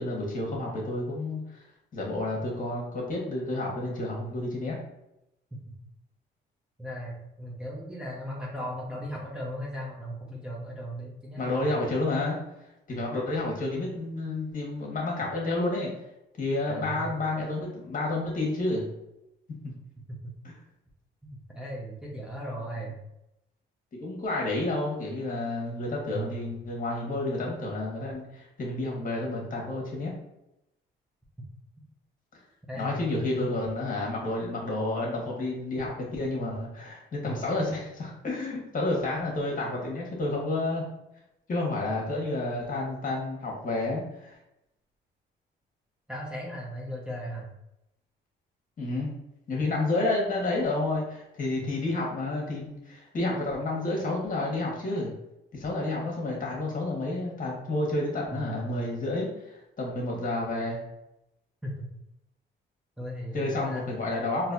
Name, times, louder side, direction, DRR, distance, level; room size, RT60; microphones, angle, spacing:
voice 1, 0.0-1.6 1.9-4.8 11.4-12.4 12.9-15.9 16.4-18.9 19.6-19.7 20.4-20.5 24.0-30.1 32.7-40.8 41.5-44.3 48.8-49.1 49.5-55.1 55.5-60.8 63.3-64.5, left 2 dB, 45° left, -2 dB, 1.4 m, -30 dB
voice 2, 6.8-11.8 16.7-17.2 20.1-20.3 21.2-23.0 26.1-26.4 32.7-33.6 37.2-37.4 46.1-47.5 51.6-51.7 58.3-58.9 61.6-61.9 63.0-63.9, equal, 5° right, -4 dB, 0.8 m, -37 dB
4.0 x 2.8 x 2.6 m, 0.86 s
cardioid pair, 90°, 20 cm